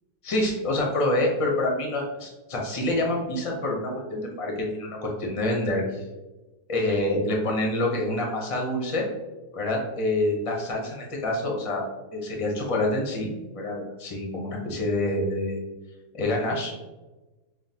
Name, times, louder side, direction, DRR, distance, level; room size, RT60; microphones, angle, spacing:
voice 1, 0.2-6.0 6.7-9.0 9.5-11.9 12.1-15.6 16.1-16.8, left 1 dB, 35° left, -1 dB, 0.5 m, -27 dB
5.7 x 2.2 x 2.8 m, 1.1 s
omnidirectional pair, 1.7 m